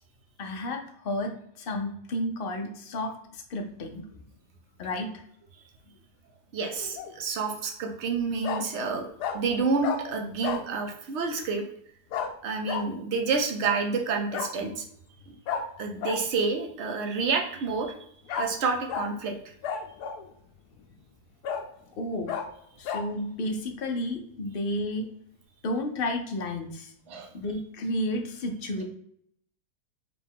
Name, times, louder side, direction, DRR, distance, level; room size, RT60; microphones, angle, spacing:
voice 1, 0.4-4.0 4.8-5.1 22.0-22.3 22.8-25.1 25.6-26.9 27.3-28.8, left 1 dB, 70° left, 3 dB, 0.5 m, -32 dB
voice 2, 6.5-9.1 9.3-11.6 12.4-14.8 15.3-15.4 15.8-17.9 18.3-19.5 27.1-27.3, right 4 dB, 60° right, 3 dB, 0.8 m, -29 dB
Bark, 6.7-7.1 8.4-8.6 9.2-9.4 9.8-10.0 10.4-10.7 12.1-12.3 12.7-12.8 14.3-14.5 15.5-15.6 16.0-16.2 18.3-18.5 18.9-19.1 19.6-20.3 20.8-20.9 21.4-21.6 22.3-22.4 22.8-23.0, left 7 dB, 90° left, 1.1 m, -31 dB
4.9 x 2.3 x 3.4 m, 0.68 s
omnidirectional pair, 1.7 m